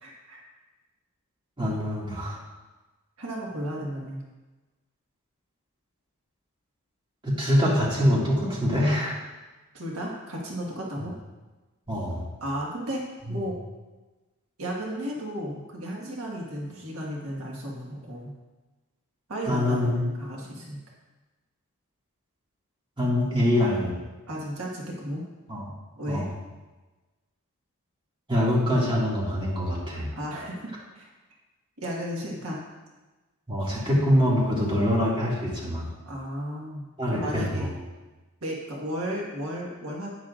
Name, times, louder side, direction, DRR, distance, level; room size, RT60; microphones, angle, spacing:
voice 1, 0.0-0.4 3.2-4.2 9.7-11.1 12.4-13.0 13.3-13.5 14.6-18.3 19.3-20.8 24.3-25.2 26.0-26.3 30.1-31.1 31.8-32.6 36.0-37.7 38.4-40.1, equal, 70° right, -2 dB, 1.6 m, -34 dB
voice 2, 1.6-2.4 7.2-9.2 11.9-12.2 19.5-20.1 23.0-24.0 25.5-25.6 26.1-26.3 28.3-30.1 33.5-35.8 37.0-37.7, equal, 20° right, -5 dB, 2.2 m, -24 dB
11.0 x 9.4 x 2.5 m, 1.2 s
head